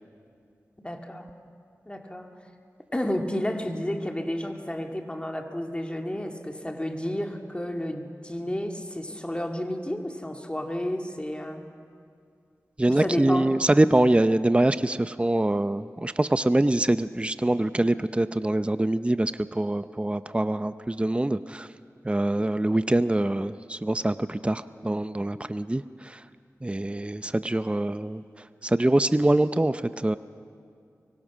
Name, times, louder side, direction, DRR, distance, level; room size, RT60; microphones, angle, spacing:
voice 1, 0.8-1.3 1.9-2.3 2.9-11.6 12.8-13.5, left 1 dB, 20° left, 3 dB, 2.4 m, -31 dB
voice 2, 12.8-21.7 22.0-26.2 26.6-28.2 28.6-30.2, right 1 dB, 20° right, 12 dB, 0.6 m, -24 dB
24.5 x 22.5 x 6.3 m, 2.4 s
cardioid pair, 45°, 6 cm